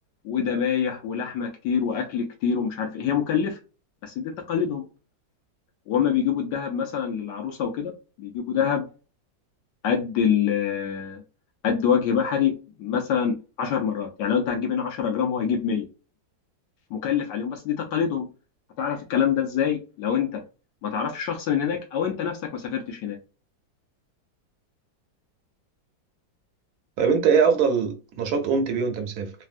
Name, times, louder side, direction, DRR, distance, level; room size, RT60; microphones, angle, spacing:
voice 1, 0.2-3.6 4.0-4.8 5.9-7.9 8.2-8.9 9.8-11.2 11.6-12.5 12.8-15.9 16.9-18.3 18.8-20.4 20.8-23.2, left 7 dB, 70° left, 1.1 m, -25 dB
voice 2, 27.0-29.3, right 6 dB, 70° right, 0.9 m, -22 dB
3.3 x 2.2 x 2.4 m
omnidirectional pair, 2.1 m